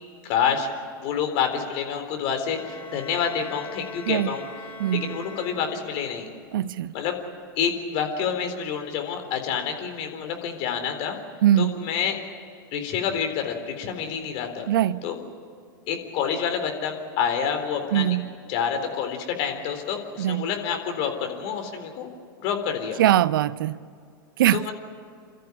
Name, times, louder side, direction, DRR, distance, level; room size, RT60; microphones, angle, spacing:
voice 1, 0.2-0.7 1.0-4.5 4.9-6.3 6.9-7.2 7.6-11.2 11.6-12.2 12.7-14.7 15.0-15.2 15.9-18.2 18.5-22.1 22.4-23.0 24.5-24.7, left 7 dB, 50° left, 3.9 m, -28 dB
sound 1, 2.4-6.3, left 2 dB, 15° left, 3.9 m, -41 dB
voice 2, 4.8-5.2 6.5-6.9 11.4-11.8 14.7-15.1 17.9-18.3 20.2-20.5 23.0-23.8 24.4-24.7, right 12 dB, 70° right, 0.5 m, -22 dB
28.5 x 14.0 x 9.9 m
hypercardioid pair, 95°, 12 cm